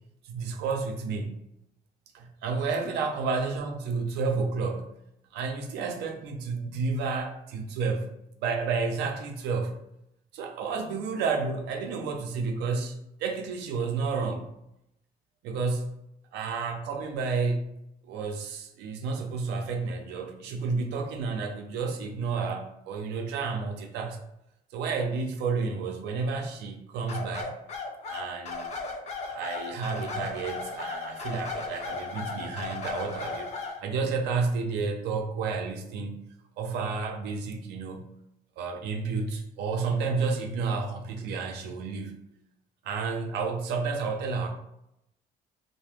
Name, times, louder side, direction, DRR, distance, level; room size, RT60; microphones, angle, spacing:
voice 1, 0.2-1.4 2.1-4.9 5.3-8.1 8.4-9.8 10.3-14.5 15.4-15.9 16.3-17.7 18.1-24.2 24.7-27.5 28.1-28.7 29.2-33.5 33.8-36.1 36.6-38.1 38.6-42.2 42.8-44.5, right 4 dB, 85° right, 4 dB, 0.5 m, -31 dB
sound 1, 27.1-33.8, left 4 dB, 40° left, 0.5 m, -36 dB
2.8 x 2.1 x 3.3 m, 0.83 s
cardioid pair, 110°, 17 cm